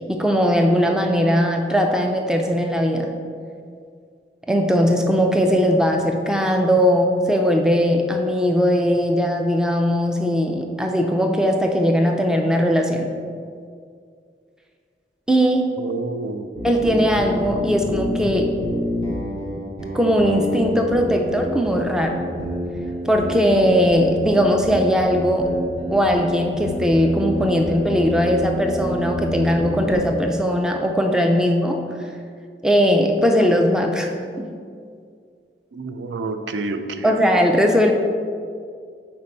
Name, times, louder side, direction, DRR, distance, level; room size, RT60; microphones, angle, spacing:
voice 1, 0.1-3.2 4.5-13.1 15.3-15.8 16.6-18.5 19.9-22.2 23.1-25.6 25.9-31.8 32.6-34.5 37.0-37.9, equal, 5° right, 3 dB, 0.3 m, -19 dB
voice 2, 15.8-16.5 35.7-37.5, right 3 dB, 90° right, 7 dB, 0.4 m, -29 dB
sound 1, 16.5-30.1, equal, 35° right, 1.0 m, -28 dB
4.3 x 4.2 x 5.2 m, 2.2 s
head